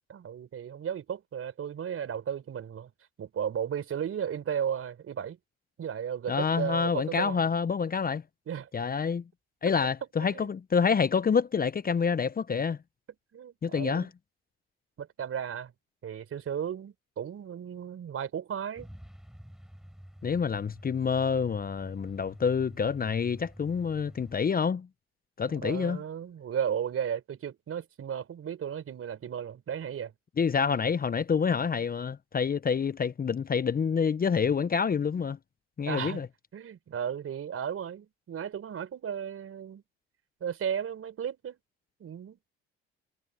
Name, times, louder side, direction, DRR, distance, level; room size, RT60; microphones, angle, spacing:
voice 1, 0.1-2.9 3.2-5.4 5.8-7.4 8.5-8.7 10.2-10.5 13.3-14.1 15.0-15.7 16.0-18.9 25.5-30.1 35.9-36.2 36.5-39.8 40.4-41.6 42.0-42.4, right 8 dB, 50° right, 4.6 m, -35 dB
voice 2, 6.3-8.2 8.7-9.2 9.6-12.8 13.6-14.1 20.2-24.9 25.4-26.0 30.4-35.4 35.8-36.3, left 6 dB, 30° left, 1.0 m, -27 dB
Truck, 18.8-24.4, equal, ahead, 7.1 m, -49 dB
hypercardioid pair, 60°, 30 cm